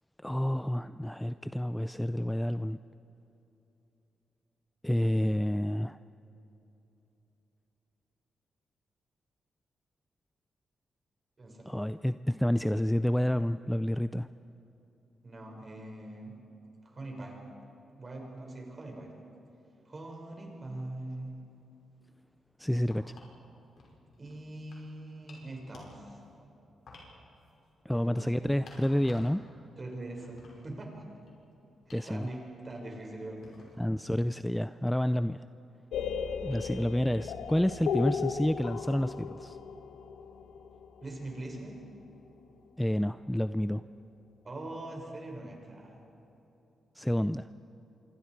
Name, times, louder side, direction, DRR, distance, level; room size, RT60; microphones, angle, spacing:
voice 1, 0.2-2.8 4.8-6.0 11.7-14.3 22.6-23.2 27.9-29.4 31.9-32.3 33.8-35.4 36.4-39.6 42.8-43.8 47.0-47.5, equal, 5° left, 12 dB, 0.4 m, -29 dB
voice 2, 11.4-11.8 15.2-16.4 16.8-17.4 18.0-19.1 19.9-21.4 24.2-26.2 27.9-28.3 29.8-31.0 31.9-33.8 41.0-41.8 44.4-46.0, right 2 dB, 35° right, 1 dB, 5.5 m, -42 dB
sound 1, 22.7-23.4 23.8-24.9 25.2-26.4 26.9-29.5 29.8-31.4 31.9-32.2 32.7-33.0 33.4-33.9, left 2 dB, 70° left, 5.6 m, -54 dB
sound 2, 35.9-41.7, left 6 dB, 90° left, 1.0 m, -36 dB
27.0 x 25.0 x 4.7 m, 3.0 s
cardioid pair, 95°, 0 cm